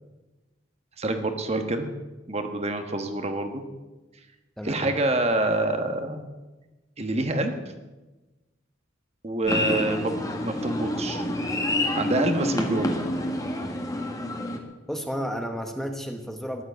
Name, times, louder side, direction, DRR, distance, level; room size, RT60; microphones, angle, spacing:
voice 1, 1.0-1.9 2.3-3.6 4.6-6.2 7.0-7.5 9.2-11.2 11.9-13.0, right 2 dB, 35° right, 6 dB, 1.4 m, -27 dB
sound 1, 9.5-14.6, left 1 dB, 20° left, 1.7 m, -28 dB
voice 2, 14.9-16.6, equal, ahead, 4 dB, 1.1 m, -32 dB
14.5 x 11.5 x 8.0 m, 1.2 s
head